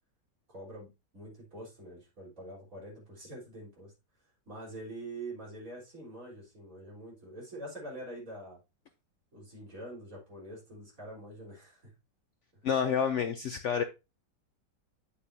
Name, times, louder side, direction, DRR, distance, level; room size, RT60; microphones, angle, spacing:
voice 1, 0.5-3.9 4.5-8.6 9.3-11.8, right 1 dB, 50° right, 4.4 m, -45 dB
voice 2, 12.6-13.8, left 7 dB, 70° left, 0.7 m, -29 dB
8.7 x 6.9 x 2.7 m
omnidirectional pair, 1.8 m